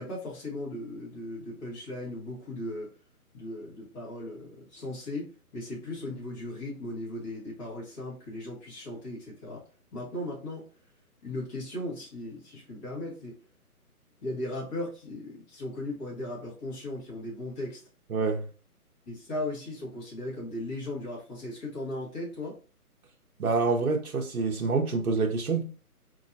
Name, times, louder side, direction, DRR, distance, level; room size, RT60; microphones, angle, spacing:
voice 1, 0.0-2.9 3.3-9.6 9.9-10.6 11.2-13.3 14.2-17.8 19.1-22.5, left 1 dB, 25° left, 1.9 m, -37 dB
voice 2, 18.1-18.4 23.4-25.6, right 4 dB, 70° right, 0.8 m, -26 dB
4.5 x 2.9 x 2.7 m
figure-of-eight pair, 140°, 45 cm